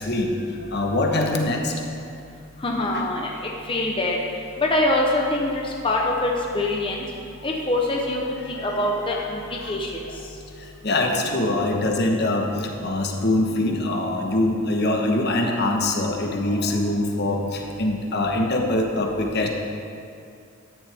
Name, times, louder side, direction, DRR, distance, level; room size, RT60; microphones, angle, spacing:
voice 1, 0.0-1.8 2.7-3.0 8.5-8.8 9.6-9.8 10.1-10.2 10.5-19.5, left 2 dB, 50° left, 2 dB, 1.2 m, -24 dB
voice 2, 2.6-4.2 4.6-7.0 7.4-8.2 8.5-9.4 9.7-9.9, left 2 dB, 25° left, -1 dB, 0.8 m, -24 dB
13.0 x 10.5 x 3.5 m, 2.5 s
head